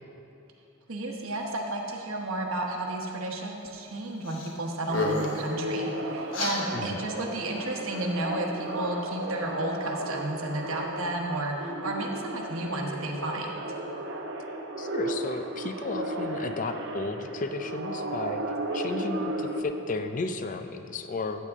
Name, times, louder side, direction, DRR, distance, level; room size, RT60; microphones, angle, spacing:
voice 1, 0.9-13.5, right 1 dB, 75° right, 0 dB, 1.1 m, -32 dB
sound 1, 4.3-4.5 4.8-5.5 6.3-6.6, left 3 dB, 60° left, 1.2 m, -30 dB
sound 2, 4.9-19.6, right 1 dB, 55° right, 0.8 m, -35 dB
voice 2, 6.7-7.0 14.8-21.5, left 3 dB, 35° left, 8 dB, 0.4 m, -34 dB
14.0 x 8.3 x 3.6 m, 2.8 s
head